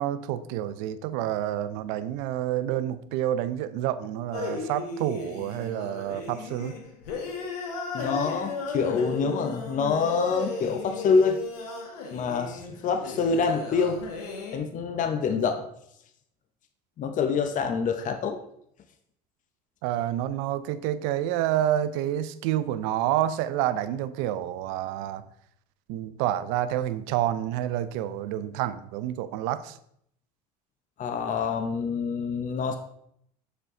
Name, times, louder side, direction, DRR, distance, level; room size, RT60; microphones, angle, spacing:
voice 1, 0.0-6.7 19.8-25.2 25.9-29.8, right 12 dB, 75° right, 0.5 m, -28 dB
sound 1, 4.3-14.6, left 3 dB, 85° left, 1.2 m, -35 dB
voice 2, 7.9-11.4 12.1-14.0 14.5-15.7 17.0-18.4 31.0-32.8, left 5 dB, 40° left, 0.8 m, -26 dB
6.7 x 4.5 x 3.7 m
supercardioid pair, 80°, 19 cm